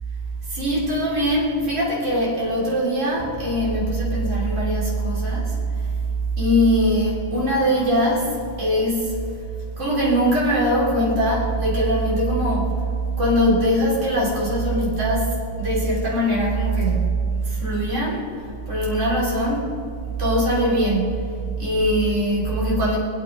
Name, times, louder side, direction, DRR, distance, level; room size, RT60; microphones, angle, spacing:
voice 1, 0.4-5.9 6.4-9.4 9.8-12.8 13.2-17.2 17.4-19.8 20.2-21.2 21.6-23.0, equal, 60° right, -6 dB, 3.7 m, -21 dB
25.5 x 9.1 x 5.4 m, 2.3 s
omnidirectional pair, 1.4 m